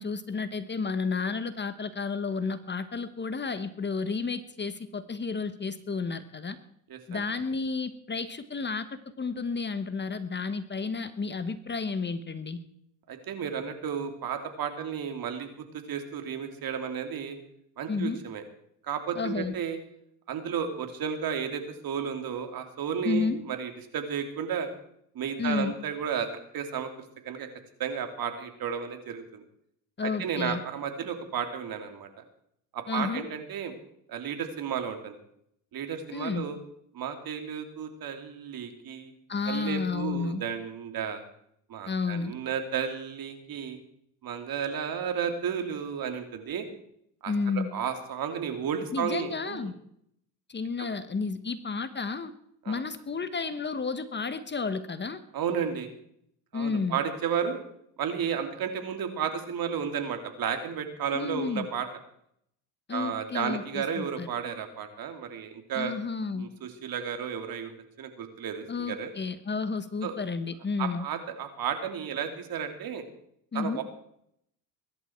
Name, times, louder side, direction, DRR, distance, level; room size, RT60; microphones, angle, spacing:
voice 1, 0.0-6.6 7.1-12.6 17.9-18.2 19.1-19.5 23.0-23.4 25.4-25.7 30.0-30.6 32.9-33.3 36.1-36.4 39.3-40.4 41.9-42.3 47.3-47.7 48.9-49.7 50.5-52.3 52.7-55.2 56.5-57.0 61.1-61.7 62.9-64.3 65.7-66.5 68.7-71.0 73.5-73.8, left 4 dB, 25° left, 12 dB, 1.3 m, -31 dB
voice 2, 6.9-7.2 13.1-17.4 17.8-18.4 18.8-19.8 20.3-24.7 25.1-26.3 26.5-26.9 27.2-27.5 27.8-29.4 30.0-32.1 32.7-33.7 34.1-35.2 35.7-36.6 36.9-39.1 39.5-41.2 41.7-43.8 44.2-46.6 47.2-49.7 52.6-52.8 55.3-55.9 56.5-57.6 58.0-61.9 62.9-66.0 66.3-69.1 70.0-70.2 70.8-73.0 73.5-73.8, right 7 dB, 55° right, 6 dB, 3.0 m, -33 dB
22.0 x 11.5 x 4.6 m, 0.71 s
supercardioid pair, 85°, 42 cm